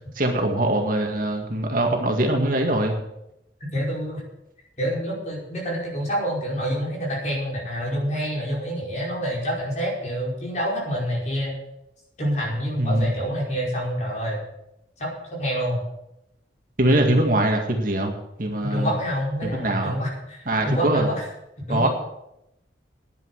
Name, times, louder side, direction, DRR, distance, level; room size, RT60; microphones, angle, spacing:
voice 1, 0.2-3.0 12.8-13.1 16.8-18.9 19.4-20.0 20.5-21.1 21.7-21.9, right 1 dB, 50° right, 2 dB, 2.0 m, -22 dB
voice 2, 3.7-4.2 4.8-11.6 12.2-14.4 15.0-15.8 18.6-21.2 21.6-21.9, equal, 40° left, -3 dB, 5.0 m, -27 dB
10.5 x 9.5 x 7.3 m, 0.84 s
head